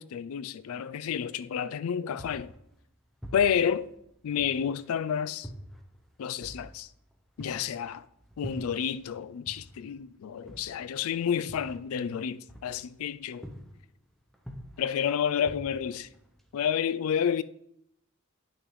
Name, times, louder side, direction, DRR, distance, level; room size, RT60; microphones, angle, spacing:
voice 1, 0.0-2.5 3.3-3.9 4.2-5.5 6.2-6.9 7.4-8.1 8.4-13.5 14.8-16.1 16.5-17.4, left 8 dB, 70° left, 0.3 m, -30 dB
sound 1, 2.2-5.0 5.4-9.2 9.5-13.1 13.4-14.0 14.3-16.7, equal, ahead, 0.6 m, -46 dB
9.7 x 6.3 x 3.1 m
head